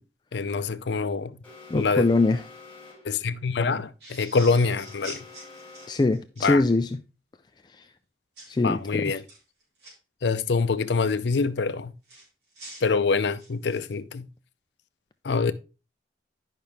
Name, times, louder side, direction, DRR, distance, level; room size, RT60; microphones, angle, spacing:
voice 1, 0.3-1.4 1.7-2.1 3.0-5.2 6.4-6.6 8.6-9.2 10.2-11.9 12.8-14.3 15.2-15.5, left 4 dB, 80° left, 0.5 m, -25 dB
Alarm, 1.4-3.2 4.4-6.2, left 3 dB, 10° left, 2.4 m, -47 dB
voice 2, 1.7-2.4 5.9-7.0 7.8-7.9 8.5-9.1, left 2 dB, 25° left, 0.3 m, -23 dB
sound 1, 4.0-6.5 8.4-8.6 9.1-9.9 12.1-13.9, right 1 dB, 65° right, 3.9 m, -45 dB
10.5 x 5.6 x 3.4 m
head